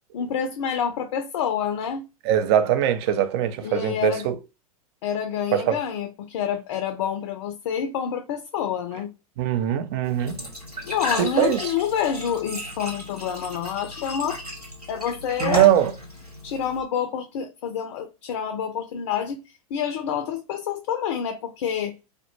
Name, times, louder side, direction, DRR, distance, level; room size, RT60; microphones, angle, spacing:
voice 1, 0.1-2.1 3.6-4.3 5.0-9.1 10.8-14.4 14.9-15.7 16.4-19.4 19.7-21.9, left 8 dB, 50° left, 0.4 m, -28 dB
voice 2, 2.2-4.4 5.5-5.8 9.4-10.4 11.2-11.6 15.4-15.9, right 10 dB, 45° right, 0.4 m, -21 dB
Glass / Trickle dribble / Fill (with liquid), 10.0-16.8, left 1 dB, 90° right, 1.3 m, -34 dB
2.1 x 2.1 x 2.8 m
figure-of-eight pair, 85°, 19 cm